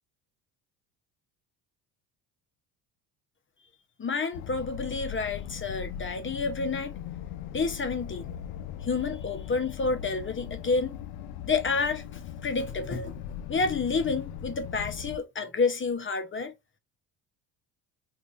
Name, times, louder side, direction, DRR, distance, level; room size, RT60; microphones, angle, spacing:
voice 1, 4.0-7.0 7.5-8.3 8.8-11.0 11.4-13.2 13.5-16.5, left 4 dB, 25° left, 0.9 m, -29 dB
sound 1, 4.3-15.2, left 10 dB, 70° left, 0.7 m, -39 dB
3.6 x 2.6 x 2.5 m
hypercardioid pair, 65°, 49 cm